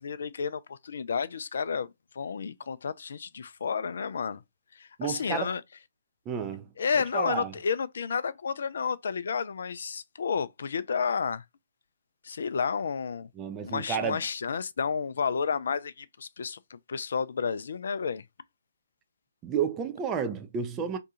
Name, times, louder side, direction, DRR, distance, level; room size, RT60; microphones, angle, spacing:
voice 1, 0.0-4.4 4.8-5.6 6.8-11.4 12.2-13.3 13.6-18.2, left 6 dB, 60° left, 0.3 m, -31 dB
voice 2, 5.0-5.5 6.3-6.7 7.1-7.5 13.4-14.2 19.4-21.0, right 7 dB, 20° right, 0.4 m, -31 dB
2.6 x 2.3 x 2.7 m
figure-of-eight pair, 135°, 0 cm